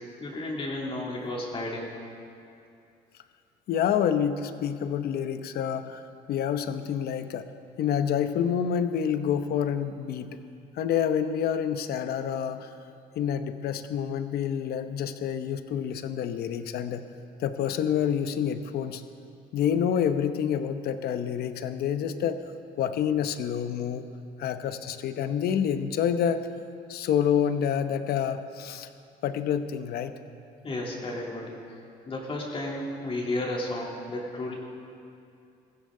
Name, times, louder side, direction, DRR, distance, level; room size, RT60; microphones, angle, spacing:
voice 1, 0.2-1.9 30.6-31.6 32.1-34.5, left 1 dB, 35° left, -2 dB, 3.3 m, -33 dB
voice 2, 3.7-7.5 7.8-10.3 10.7-12.7 13.2-17.0 17.4-19.0 19.5-22.4 22.8-24.1 24.4-26.5 26.9-28.9 29.2-30.1, left 8 dB, 65° left, 10 dB, 0.9 m, -28 dB
21.0 x 15.5 x 3.8 m, 2.5 s
cardioid pair, 110°, 17 cm